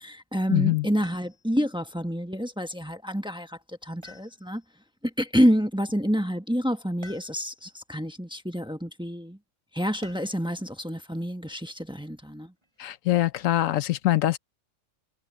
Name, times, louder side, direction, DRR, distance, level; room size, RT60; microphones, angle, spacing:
voice 1, 0.0-4.6 5.0-9.4 9.7-12.5, equal, 5° right, 1.1 m, -28 dB
voice 2, 0.5-0.9 12.8-14.4, left 15 dB, 85° left, 1.1 m, -23 dB
sound 1, 1.0-1.7 4.0-4.8 7.0-7.7 10.0-10.5 12.2-12.9, left 1 dB, 20° right, 6.6 m, -51 dB
omnidirectional pair, 1.3 m